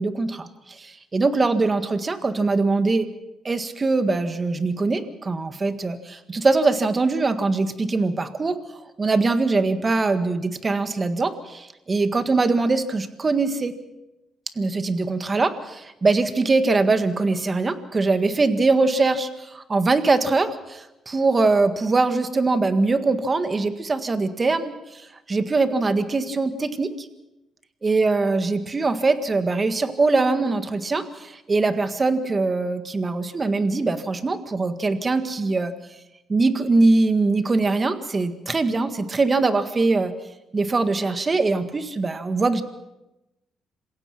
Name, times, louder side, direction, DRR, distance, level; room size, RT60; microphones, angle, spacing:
voice 1, 0.0-3.1 3.5-8.6 9.0-13.7 14.6-25.0 25.3-27.1 27.8-35.7 36.3-40.1 40.5-42.6, right 3 dB, 30° right, 10 dB, 1.7 m, -22 dB
27.0 x 16.5 x 6.0 m, 0.95 s
cardioid pair, 90°, 0 cm